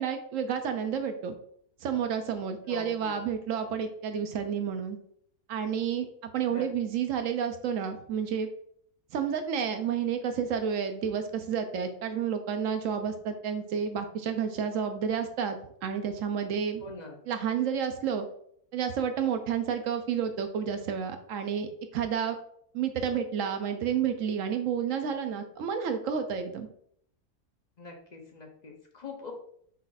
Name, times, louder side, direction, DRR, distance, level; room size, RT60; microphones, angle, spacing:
voice 1, 0.0-1.3 1.8-5.0 5.5-6.1 6.3-8.5 9.1-16.8 17.3-18.3 18.7-22.4 22.7-26.7, right 7 dB, 70° right, 7 dB, 0.8 m, -30 dB
voice 2, 2.7-3.2 6.5-6.6 16.8-17.2 27.8-29.3, left 3 dB, 45° left, 1 dB, 0.6 m, -43 dB
5.5 x 2.4 x 3.9 m, 0.65 s
omnidirectional pair, 1.6 m